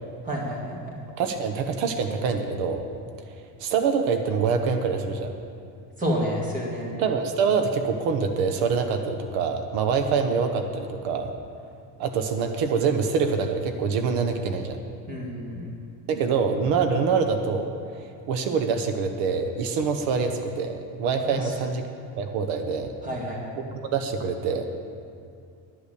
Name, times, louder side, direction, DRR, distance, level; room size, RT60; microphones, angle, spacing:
voice 1, 0.2-0.9 6.0-7.0 15.1-15.7 21.3-21.5 23.0-23.6, equal, 15° right, -2 dB, 1.9 m, -30 dB
voice 2, 1.2-2.8 3.6-5.3 6.9-11.3 12.0-14.8 16.1-17.7 18.3-21.8 22.2-22.9 23.9-24.7, right 5 dB, 85° right, 6 dB, 1.1 m, -25 dB
12.0 x 8.4 x 6.8 m, 2.4 s
cardioid pair, 175°, 46 cm